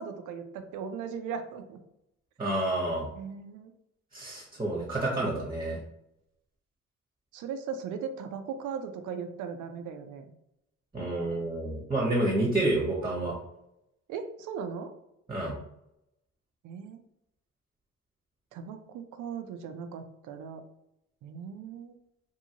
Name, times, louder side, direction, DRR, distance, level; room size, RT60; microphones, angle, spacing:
voice 1, 0.0-1.8 3.1-3.7 7.3-10.3 14.1-14.9 16.6-17.0 18.5-20.6 21.2-22.0, right 6 dB, 85° right, 7 dB, 0.5 m, -38 dB
voice 2, 2.4-3.1 4.1-5.8 10.9-13.4 15.3-15.6, right 2 dB, 15° right, -3 dB, 0.8 m, -29 dB
2.7 x 2.7 x 2.8 m, 0.82 s
cardioid pair, 90°, 30 cm